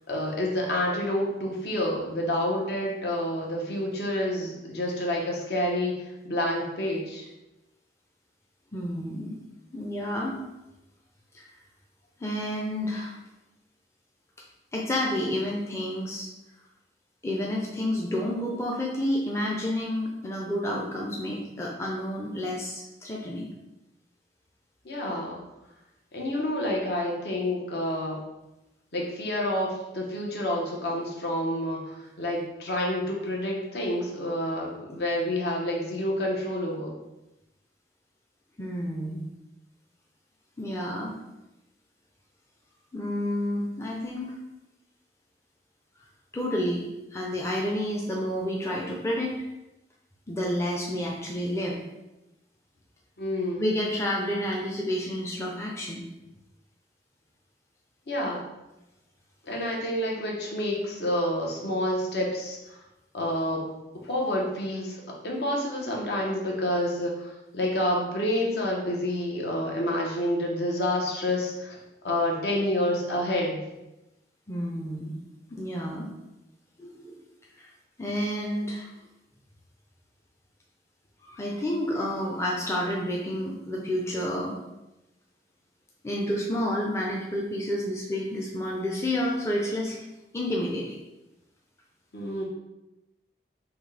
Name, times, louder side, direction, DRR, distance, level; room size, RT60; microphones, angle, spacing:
voice 1, 0.1-7.3 24.8-25.4 26.1-28.2 28.9-36.9 53.2-53.6 58.1-58.5 59.4-62.8 63.1-63.6 64.0-71.8 72.0-73.6 92.1-92.4, left 1 dB, 65° left, -2 dB, 1.0 m, -28 dB
voice 2, 8.7-9.4 9.7-10.4 11.3-11.5 12.2-13.2 14.7-16.3 17.2-23.5 38.6-39.2 40.6-41.2 42.9-44.3 46.3-46.9 47.1-49.4 50.3-51.8 53.6-56.0 74.5-75.2 75.5-76.1 76.8-77.2 77.6-77.7 78.0-78.9 81.2-84.5 86.0-90.0 90.3-91.0, left 1 dB, 15° left, -2 dB, 0.5 m, -30 dB
6.0 x 2.3 x 3.3 m, 0.96 s
head